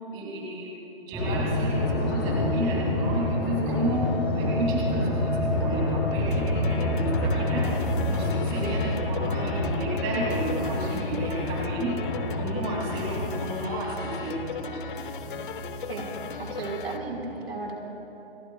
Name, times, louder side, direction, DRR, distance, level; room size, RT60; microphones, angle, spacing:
voice 1, 0.1-0.7 1.1-4.1 4.3-7.7 8.1-12.0 12.3-14.9, right 2 dB, 25° right, -4 dB, 2.7 m, -32 dB
sound 1, 1.1-17.2, equal, 5° right, 3.6 m, -30 dB
Drum, 1.2-14.3, left 4 dB, 20° left, 0.6 m, -32 dB
sound 2, 6.3-17.0, left 7 dB, 55° left, 1.0 m, -38 dB
voice 2, 16.4-17.8, right 3 dB, 75° right, -1 dB, 4.5 m, -34 dB
29.5 x 19.0 x 2.3 m, 2.9 s
hypercardioid pair, 165°, 31 cm